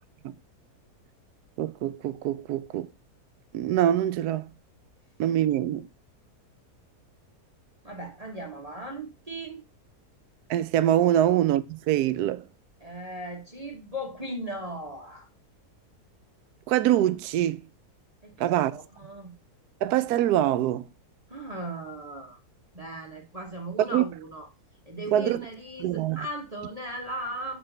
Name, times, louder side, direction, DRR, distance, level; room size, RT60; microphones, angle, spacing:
voice 1, 1.6-2.9 3.5-4.5 5.2-5.9 10.5-12.5 16.7-17.6 18.4-18.7 19.8-20.9 23.9-24.0 25.1-25.4 25.8-26.3, right 12 dB, 75° right, 1.1 m, -24 dB
voice 2, 7.8-9.6 11.1-11.3 12.8-15.3 18.2-19.3 21.3-22.4 22.7-24.5 24.9-27.6, right 1 dB, 30° right, 1.0 m, -37 dB
7.6 x 4.1 x 3.8 m
omnidirectional pair, 1.7 m